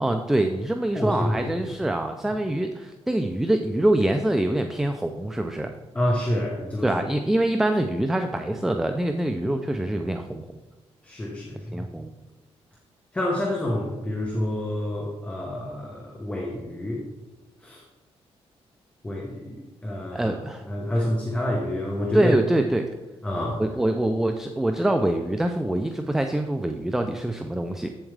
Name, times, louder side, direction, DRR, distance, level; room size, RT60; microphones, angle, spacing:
voice 1, 0.0-5.7 6.8-10.6 11.7-12.1 20.1-20.6 22.1-22.9 23.6-27.9, right 1 dB, 5° right, 6 dB, 0.4 m, -25 dB
voice 2, 0.9-1.8 5.9-6.9 11.0-11.8 13.1-17.0 17.6-17.8 19.0-20.3 20.6-22.4 23.2-23.6, left 1 dB, 10° left, -2 dB, 1.1 m, -28 dB
8.1 x 7.2 x 3.3 m, 1.2 s
cardioid pair, 140°, 11 cm